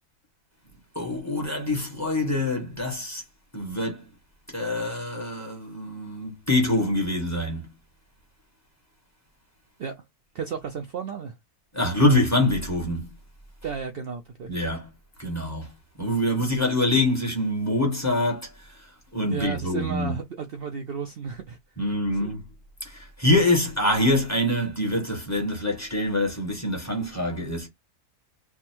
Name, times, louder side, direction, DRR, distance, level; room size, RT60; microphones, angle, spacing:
voice 1, 0.9-3.2 3.5-4.0 4.5-7.7 11.7-13.1 14.5-14.9 15.2-15.7 16.0-20.2 21.8-22.4 22.8-27.7, left 1 dB, 10° left, 1.2 m, -25 dB
voice 2, 10.3-11.3 13.6-14.5 19.3-22.4, right 6 dB, 75° right, 0.5 m, -34 dB
3.5 x 2.3 x 4.3 m
omnidirectional pair, 1.7 m